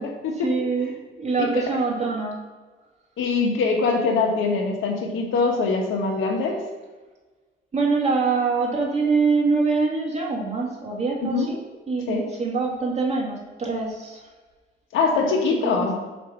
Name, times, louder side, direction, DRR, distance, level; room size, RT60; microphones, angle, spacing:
voice 1, 0.0-2.4 7.7-11.6 11.9-14.2 15.2-15.4 15.6-15.9, right 4 dB, 35° right, -2 dB, 2.1 m, -24 dB
voice 2, 3.2-6.6 11.2-11.5 12.1-12.2 14.9-16.0, left 4 dB, 80° left, 1 dB, 1.4 m, -23 dB
5.4 x 5.0 x 5.5 m, 1.3 s
cardioid pair, 90°, 20 cm